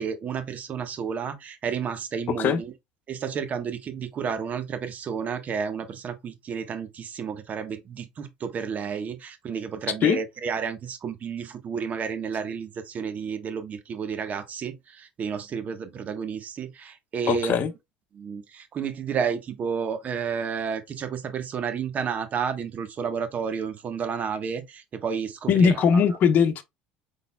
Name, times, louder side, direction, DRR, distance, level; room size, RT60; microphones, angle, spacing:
voice 1, 0.0-2.7 3.1-17.5 18.1-26.0, right 6 dB, 40° right, 1.1 m, -31 dB
voice 2, 2.3-2.6 10.0-10.2 17.3-17.7 25.5-26.6, left 7 dB, 50° left, 0.9 m, -20 dB
5.4 x 4.0 x 2.2 m
hypercardioid pair, 85°, 4 cm